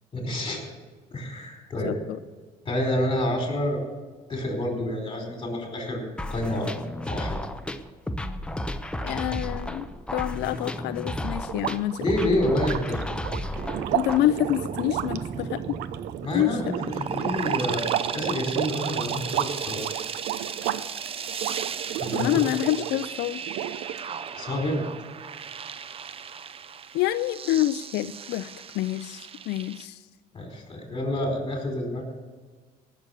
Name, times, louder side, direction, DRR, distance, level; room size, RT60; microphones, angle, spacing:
voice 1, 0.1-0.6 1.1-2.0 2.6-3.8 4.3-6.0 6.3-6.7 7.0-7.4 12.0-13.1 16.2-17.8 18.1-19.8 22.0-22.3 24.3-24.9 30.3-32.0, left 1 dB, 30° left, 1 dB, 4.6 m, -28 dB
voice 2, 1.8-2.2 9.0-9.9 10.1-12.1 13.9-15.8 16.3-16.6 22.1-23.4 26.9-30.1, left 14 dB, 80° left, 12 dB, 0.4 m, -27 dB
sound 1, 6.2-14.2, left 1 dB, 5° left, 0.7 m, -33 dB
sound 2, 11.5-23.1 23.5-24.3, right 12 dB, 85° right, 0.6 m, -32 dB
sound 3, 13.5-29.8, right 7 dB, 35° right, 0.6 m, -35 dB
18.0 x 6.9 x 6.7 m, 1.4 s
cardioid pair, 110°, 17 cm